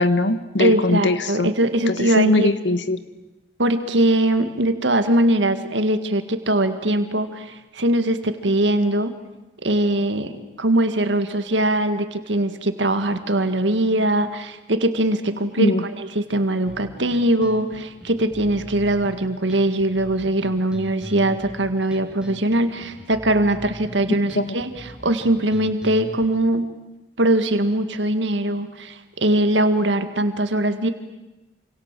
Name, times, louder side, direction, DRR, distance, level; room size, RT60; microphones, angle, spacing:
voice 1, 0.0-1.5 1.9-3.0 15.6-15.8 24.3-24.6, left 2 dB, 85° left, 12 dB, 1.6 m, -20 dB
voice 2, 0.6-2.5 3.6-9.1 9.6-26.7 27.2-30.9, right 1 dB, 90° right, 9 dB, 2.0 m, -21 dB
sound 1, 16.7-26.3, equal, 5° right, 2.7 m, -40 dB
28.0 x 26.5 x 7.6 m, 1.0 s
head